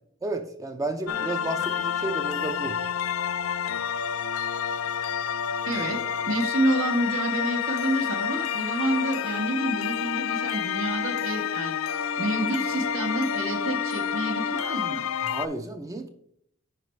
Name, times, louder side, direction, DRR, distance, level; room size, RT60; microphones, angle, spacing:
voice 1, 0.2-2.8 15.2-16.1, right 2 dB, 15° right, 6 dB, 0.4 m, -32 dB
sound 1, 1.1-15.5, left 8 dB, 85° left, 0.4 m, -29 dB
voice 2, 5.6-11.7 12.2-15.0, right 1 dB, 80° right, 4 dB, 1.5 m, -28 dB
10.5 x 4.4 x 3.2 m, 0.69 s
head